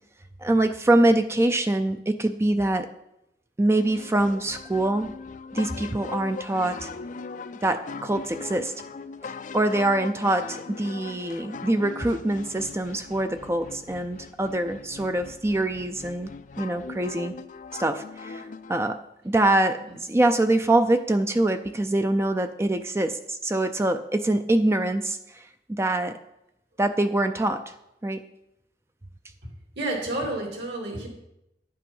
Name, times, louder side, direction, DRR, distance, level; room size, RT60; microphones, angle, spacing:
voice 1, 0.4-2.9 3.6-5.1 5.5-6.9 7.6-8.7 9.5-16.3 16.6-17.3 17.7-19.0 19.2-25.4 25.7-26.1 26.8-27.6 28.0-28.2, right 1 dB, 15° right, 8 dB, 0.4 m, -24 dB
sound 1, 3.7-18.9, left 4 dB, 45° left, 0.4 m, -40 dB
voice 2, 29.8-31.1, right 1 dB, 70° right, 0 dB, 3.0 m, -30 dB
10.0 x 8.5 x 5.4 m, 0.85 s
head